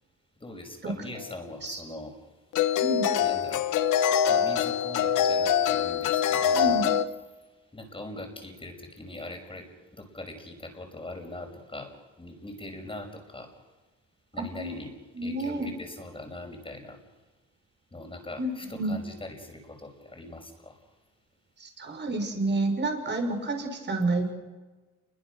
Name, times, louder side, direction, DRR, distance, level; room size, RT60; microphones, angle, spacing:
voice 1, 0.4-2.1 3.2-3.6 4.3-6.9 7.7-9.7 9.9-11.9 12.2-13.5 14.3-14.9 15.2-17.0 17.9-20.7, left 1 dB, 15° left, 4 dB, 5.8 m, -41 dB
sound 1, 1.2-1.3 2.5-7.1, left 8 dB, 85° left, 1.2 m, -24 dB
voice 2, 6.5-6.8 14.4-14.7 15.1-15.7 18.4-18.9 21.6-24.3, right 2 dB, 35° right, 5 dB, 5.9 m, -29 dB
28.5 x 23.0 x 6.4 m, 1.3 s
cardioid pair, 90°, 30 cm